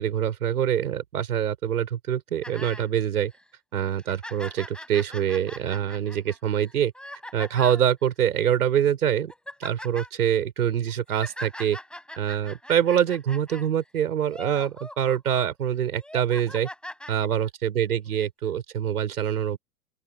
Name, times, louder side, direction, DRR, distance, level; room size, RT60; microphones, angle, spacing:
voice 1, 0.0-3.3 3.7-6.9 7.3-9.3 9.6-11.8 12.2-16.7 17.1-19.6, right 9 dB, 70° right, 5.4 m, -25 dB
sound 1, 2.4-2.9 3.3-3.4 3.9-7.9 8.6-8.8 9.1-10.1 10.9-13.7 14.2-15.5 15.9-17.1 18.1-18.2, left 1 dB, ahead, 6.6 m, -41 dB
open air
figure-of-eight pair, 95°, 46 cm